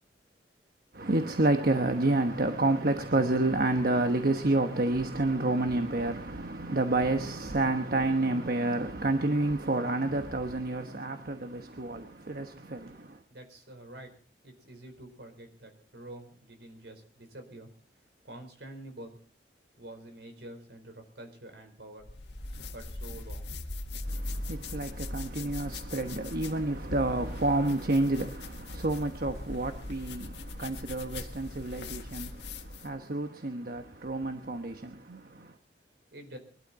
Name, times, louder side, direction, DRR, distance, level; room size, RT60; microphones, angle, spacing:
voice 1, 0.9-13.2 24.0-35.5, right 2 dB, 55° right, 1.1 m, -29 dB
voice 2, 13.3-14.1 14.4-17.7 18.2-19.2 19.8-22.1 22.7-23.5 36.1-36.4, right 1 dB, 75° right, 4.3 m, -47 dB
sound 1, 22.0-33.0, left 2 dB, 80° left, 1.7 m, -40 dB
23.0 x 12.5 x 4.1 m
head